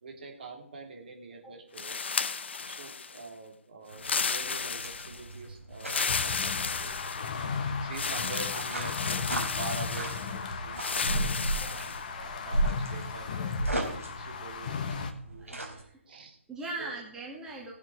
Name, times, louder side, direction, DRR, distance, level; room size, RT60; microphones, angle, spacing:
voice 1, 0.0-2.1 2.6-6.9 7.8-11.9 12.2-15.7 16.1-16.4 16.8-17.0, right 3 dB, 45° right, 2 dB, 2.9 m, -45 dB
sound 1, 1.8-3.3 3.9-5.3 5.8-7.5 7.9-10.3 10.8-12.0, left 5 dB, 55° left, 0.8 m, -33 dB
sound 2, 3.9-15.8, right 2 dB, 85° right, 4.0 m, -36 dB
sound 3, 6.1-15.1, left 5 dB, 35° left, 1.2 m, -35 dB
voice 2, 15.4-16.0 16.5-17.7, right 2 dB, 10° right, -3 dB, 2.1 m, -40 dB
18.0 x 7.5 x 4.7 m, 0.68 s
figure-of-eight pair, 140°, 7 cm